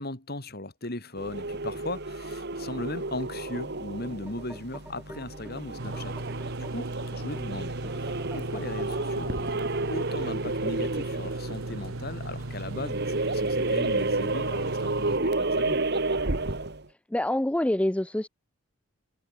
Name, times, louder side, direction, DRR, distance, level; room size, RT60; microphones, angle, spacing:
voice 1, 0.0-6.1 6.6-9.6 9.9-15.8, left 2 dB, 50° left, 3.4 m, -38 dB
sound 1, 1.2-16.8, right 2 dB, 55° right, 2.1 m, -31 dB
sound 2, 4.0-11.4, right 1 dB, 10° right, 2.8 m, -48 dB
sound 3, 5.8-15.2, right 2 dB, 85° right, 1.5 m, -37 dB
voice 2, 17.1-18.3, left 1 dB, 5° left, 0.4 m, -26 dB
head